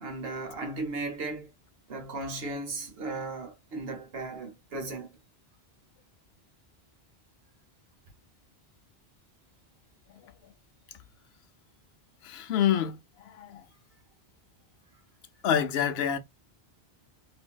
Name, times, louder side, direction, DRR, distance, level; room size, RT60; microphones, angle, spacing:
voice 1, 0.0-1.5 1.9-5.1, right 2 dB, 70° right, 1.1 m, -36 dB
voice 2, 12.2-13.6 15.4-16.2, left 9 dB, 75° left, 0.8 m, -27 dB
2.8 x 2.6 x 2.2 m
omnidirectional pair, 1.1 m